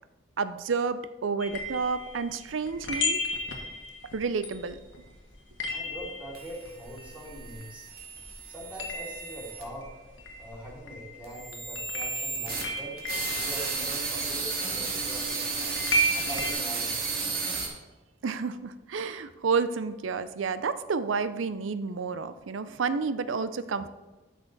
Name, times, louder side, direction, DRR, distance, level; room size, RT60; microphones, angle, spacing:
voice 1, 0.4-3.2 4.1-4.8 18.2-23.9, right 5 dB, 90° right, 13 dB, 0.5 m, -30 dB
Content warning, 1.4-8.0 8.3-16.5, equal, 80° left, 1.5 m, -34 dB
voice 2, 5.7-7.9 8.5-9.9 10.4-13.0 13.4-17.0 17.3-17.5, right 1 dB, 10° right, -5 dB, 2.7 m, -43 dB
sound 1, 6.3-9.6 11.2-17.7, right 4 dB, 50° right, 2.0 m, -33 dB
12.5 x 6.0 x 4.0 m, 1.2 s
head